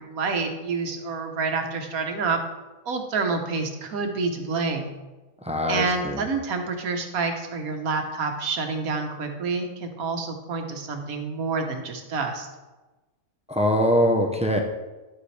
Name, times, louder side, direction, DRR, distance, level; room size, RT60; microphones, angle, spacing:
voice 1, 0.0-2.4 2.9-4.9 5.7-12.5, right 4 dB, 75° right, 4 dB, 1.6 m, -28 dB
voice 2, 5.4-6.2 13.5-14.6, equal, 5° right, 2 dB, 0.6 m, -22 dB
11.0 x 7.7 x 3.3 m, 1.2 s
omnidirectional pair, 1.5 m